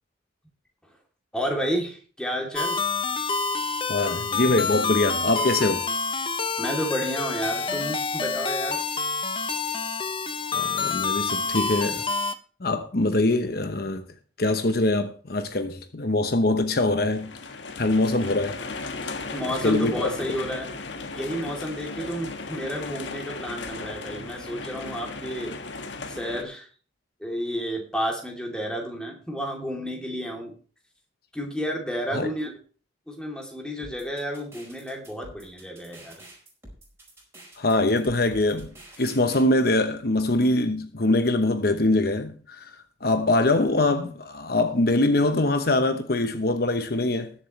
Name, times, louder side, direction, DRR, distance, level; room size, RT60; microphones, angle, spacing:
voice 1, 1.3-2.8 6.6-8.8 19.3-20.7 21.1-25.6 26.1-26.7 27.2-30.6 31.3-32.5 33.1-36.2, equal, 5° left, 3.1 m, -31 dB
sound 1, 2.6-12.3, left 4 dB, 30° left, 0.9 m, -27 dB
voice 2, 3.9-5.9 10.5-12.0 12.6-14.1 14.4-18.6 19.6-20.1 32.1-32.3 37.6-42.8 43.0-47.3, left 2 dB, 55° left, 1.0 m, -23 dB
sound 2, 17.1-26.4, left 3 dB, 80° left, 1.6 m, -36 dB
sound 3, 33.8-39.5, right 1 dB, 15° right, 4.7 m, -47 dB
20.5 x 7.6 x 3.3 m
head